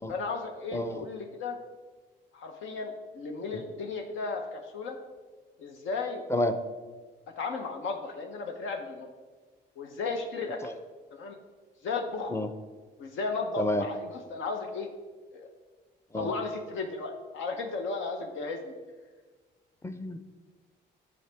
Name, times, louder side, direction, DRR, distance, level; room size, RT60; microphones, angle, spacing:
voice 1, 0.1-1.6 2.3-5.0 5.6-6.2 7.4-9.1 9.8-10.6 11.1-11.4 11.8-12.4 13.0-14.9 15.3-15.5 16.1-18.8, left 4 dB, 80° left, 3 dB, 0.8 m, -34 dB
voice 2, 0.7-1.0 6.3-6.5 10.6-10.7 12.3-12.5 13.6-13.8 16.1-16.3 19.8-20.2, left 1 dB, 15° left, 8 dB, 0.5 m, -29 dB
9.4 x 4.2 x 3.4 m, 1.4 s
cardioid pair, 90°, 20 cm